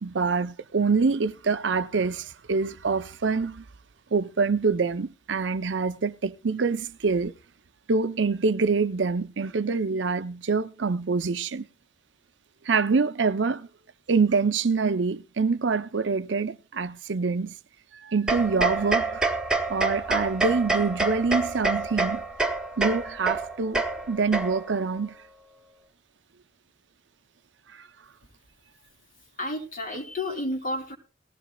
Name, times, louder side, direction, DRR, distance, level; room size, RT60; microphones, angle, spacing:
voice 1, 0.0-3.6 4.1-7.3 7.9-11.7 12.6-13.7 14.1-17.5 17.9-19.2 19.7-22.2 22.8-23.8 24.1-25.2, right 4 dB, 90° right, 0.6 m, -25 dB
sound 1, 18.3-24.8, right 3 dB, 5° right, 1.1 m, -27 dB
voice 2, 29.4-31.0, left 1 dB, 50° left, 2.9 m, -31 dB
19.0 x 15.0 x 2.3 m
head